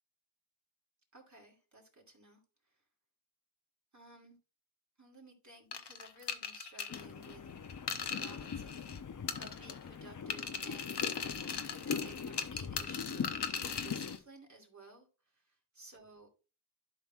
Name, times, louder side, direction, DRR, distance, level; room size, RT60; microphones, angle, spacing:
voice 1, 1.1-2.4 2.7-2.8 3.9-4.4 5.0-7.5 8.0-8.9 9.4-11.4 11.7-13.5 13.8-16.3, right 2 dB, 45° right, 2.5 m, -57 dB
sound 1, 5.7-9.0 9.3-9.9 10.3-14.2, left 6 dB, 80° left, 0.8 m, -39 dB
sound 2, 6.9-14.2, left 6 dB, 50° left, 0.6 m, -42 dB
11.5 x 5.7 x 2.4 m
wide cardioid pair, 55°, 40 cm